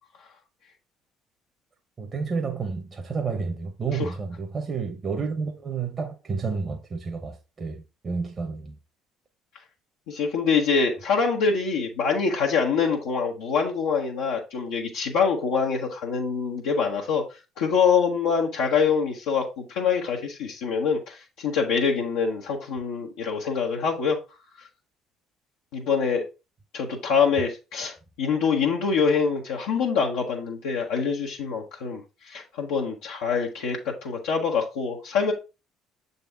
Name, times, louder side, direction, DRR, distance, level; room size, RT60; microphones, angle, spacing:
voice 1, 2.0-8.8, right 5 dB, 35° right, 1.0 m, -30 dB
voice 2, 10.1-17.2 17.6-24.2 24.6-24.7 25.7-26.2 26.7-35.3, left 5 dB, 75° left, 0.9 m, -25 dB
6.8 x 4.0 x 3.4 m
hypercardioid pair, 55°, 0 cm